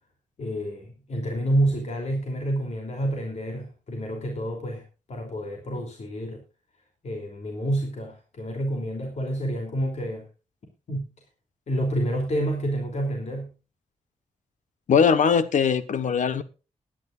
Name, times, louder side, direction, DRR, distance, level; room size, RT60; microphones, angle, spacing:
voice 1, 0.4-6.4 7.0-10.3 10.9-11.1 11.7-13.5, right 1 dB, 65° left, 2 dB, 3.1 m, -28 dB
voice 2, 14.9-16.4, left 6 dB, 85° left, 12 dB, 1.2 m, -20 dB
20.5 x 10.5 x 2.5 m, 0.32 s
wide cardioid pair, 100°, 13 cm